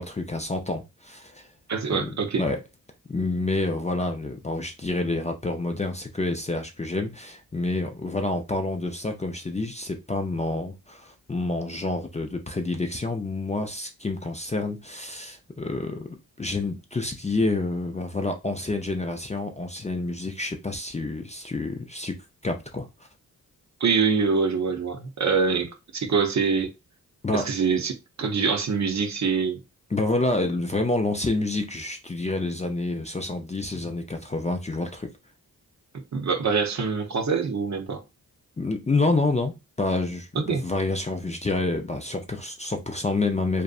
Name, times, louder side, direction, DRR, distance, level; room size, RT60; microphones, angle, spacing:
voice 1, 0.0-1.5 1.9-2.6 3.1-22.2 22.4-22.9 27.2-27.5 29.9-35.1 38.6-43.6, left 2 dB, 20° left, 0.4 m, -28 dB
voice 2, 1.7-2.4 23.8-26.7 27.3-29.6 35.9-38.0 40.3-40.6, right 5 dB, 50° right, 0.7 m, -25 dB
2.6 x 2.1 x 2.4 m
cardioid pair, 45°, 37 cm